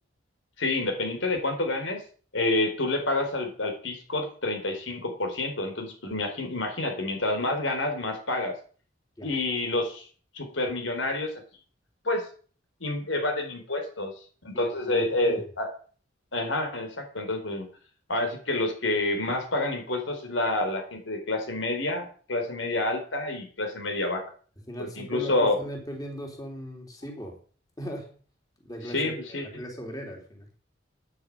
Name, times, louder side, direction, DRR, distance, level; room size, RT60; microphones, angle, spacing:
voice 1, 0.6-2.0 2.3-8.6 9.2-10.1 10.3-11.3 12.0-12.3 12.8-14.1 14.4-15.7 16.3-17.7 18.1-24.2 24.8-25.6 28.9-29.5, left 2 dB, 85° left, 5 dB, 4.1 m, -28 dB
voice 2, 14.5-15.4 24.7-27.4 27.8-28.2 28.6-30.5, equal, 20° left, 1 dB, 3.5 m, -39 dB
10.0 x 9.3 x 8.6 m, 0.42 s
head